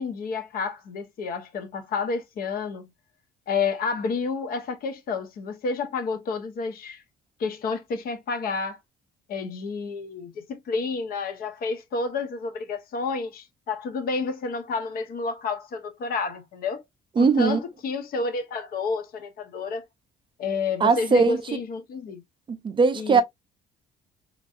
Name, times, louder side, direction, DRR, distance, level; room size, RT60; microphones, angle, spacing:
voice 1, 0.0-2.9 3.5-7.0 7.4-8.8 9.3-16.8 17.2-19.9 20.4-22.2 23.0-23.2, left 4 dB, 60° left, 0.8 m, -30 dB
voice 2, 17.2-17.6 20.8-21.4 22.5-23.2, right 4 dB, 30° right, 0.4 m, -20 dB
3.0 x 2.6 x 2.3 m
cardioid pair, 110°, 17 cm